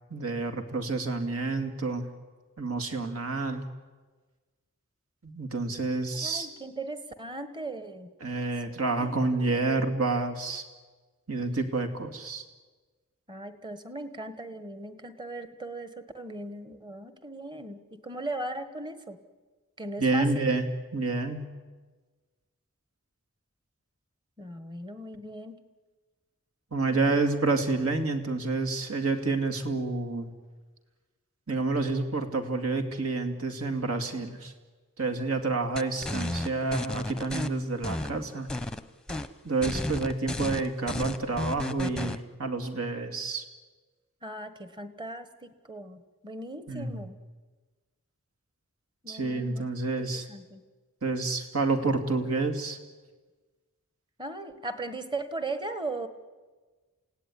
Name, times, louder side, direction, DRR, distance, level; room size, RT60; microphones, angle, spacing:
voice 1, 0.1-2.1 2.6-3.7 5.2-6.5 8.2-10.6 11.3-12.4 20.0-20.6 20.9-21.4 26.7-30.3 31.5-34.5 35.0-38.5 39.4-43.4 46.7-47.0 49.1-50.2 51.0-52.8, right 3 dB, 80° right, 6 dB, 2.6 m, -29 dB
voice 2, 6.1-8.1 9.0-9.6 13.3-19.2 19.8-20.5 24.4-25.6 26.9-27.2 44.2-47.2 49.0-49.6 50.1-50.6 54.2-56.1, right 2 dB, 20° right, 10 dB, 1.4 m, -38 dB
sound 1, 35.8-37.5 37.8-38.8 39.1-39.3 39.6-42.2, left 1 dB, 5° left, 0.8 m, -33 dB
28.5 x 17.0 x 9.9 m, 1.4 s
head